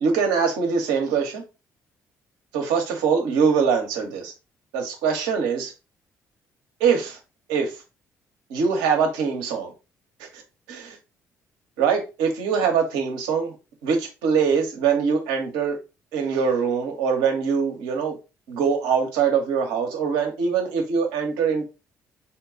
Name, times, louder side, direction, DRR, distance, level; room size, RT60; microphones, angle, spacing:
voice 1, 0.0-1.4 2.5-4.3 4.7-5.7 6.8-7.2 7.5-7.7 8.5-9.7 10.2-10.3 10.7-11.0 11.8-13.5 13.8-15.8 16.1-18.2 18.5-21.7, right 6 dB, 75° right, 1.0 m, -23 dB
4.2 x 2.3 x 3.8 m
hypercardioid pair, 45°, 8 cm